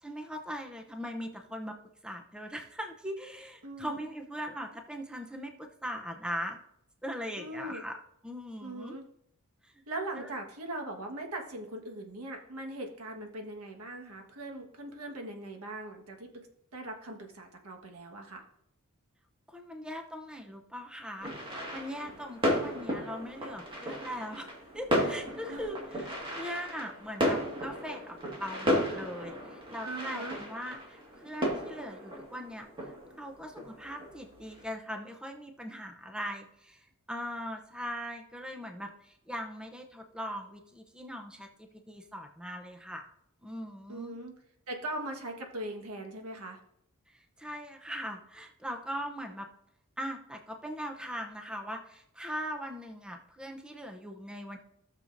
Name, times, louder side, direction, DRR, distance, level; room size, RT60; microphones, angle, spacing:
voice 1, 0.0-1.8 2.0-6.6 7.0-8.0 8.2-9.0 9.6-9.8 10.1-10.3 19.5-43.1 43.4-44.2 47.1-49.5 50.0-54.6, equal, 5° right, 3 dB, 0.6 m, -40 dB
voice 2, 3.6-4.0 7.4-7.8 8.6-9.0 9.9-16.5 16.7-18.4 25.5-25.7 29.8-30.4 43.9-44.3 44.7-46.6, right 1 dB, 80° right, 2 dB, 1.4 m, -40 dB
sound 1, 21.2-34.6, equal, 25° right, 1.7 m, -34 dB
16.0 x 6.5 x 2.6 m, 0.75 s
head